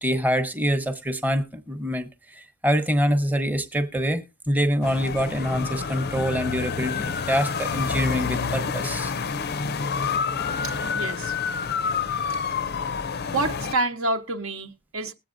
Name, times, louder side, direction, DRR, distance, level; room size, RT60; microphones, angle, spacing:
voice 1, 0.0-9.1, equal, 10° right, 0.8 m, -25 dB
sound 1, 4.8-13.7, left 5 dB, 45° left, 0.5 m, -28 dB
voice 2, 10.6-11.4 12.5-12.6 13.3-15.1, right 2 dB, 65° right, 1.0 m, -28 dB
21.0 x 7.9 x 2.6 m
head